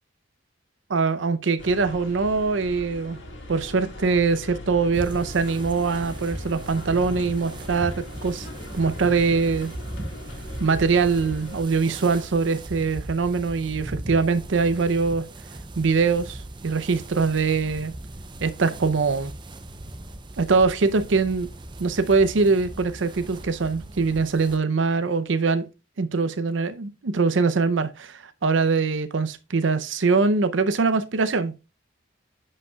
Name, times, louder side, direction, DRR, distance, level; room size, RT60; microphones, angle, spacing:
voice 1, 0.9-3.2 3.5-8.5 8.7-9.7 10.6-15.2 15.8-17.9 18.4-19.3 20.4-21.5 21.8-25.7 26.0-31.5, right 4 dB, 75° right, 0.6 m, -23 dB
sound 1, 1.6-11.6, left 1 dB, 70° left, 2.2 m, -40 dB
sound 2, 4.9-24.6, right 1 dB, 25° right, 0.6 m, -38 dB
11.0 x 5.4 x 2.3 m
head